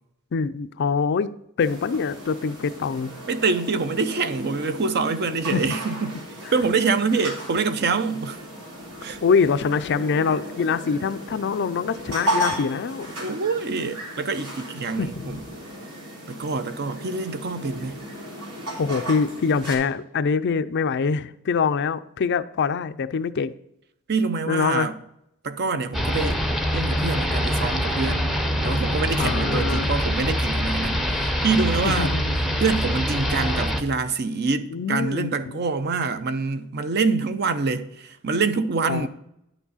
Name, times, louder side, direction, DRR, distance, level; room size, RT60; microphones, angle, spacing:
voice 1, 0.3-1.3 1.6-3.1 5.5-5.6 9.2-13.1 15.0-15.4 18.8-23.5 24.5-24.9 29.2-29.9 31.8-32.3 34.7-35.6 38.9-39.1, left 5 dB, 50° left, 0.4 m, -24 dB
sound 1, 1.6-19.8, equal, 85° right, 3.4 m, -35 dB
voice 2, 3.3-6.1 6.5-8.4 9.0-9.2 13.2-15.4 16.3-18.0 24.1-25.0 25.4-26.4 26.7-28.3 28.6-31.1 31.4-32.1 32.6-39.1, right 4 dB, 50° right, 0.6 m, -25 dB
sound 2, 25.9-33.8, equal, ahead, 0.7 m, -24 dB
10.0 x 6.0 x 4.1 m
head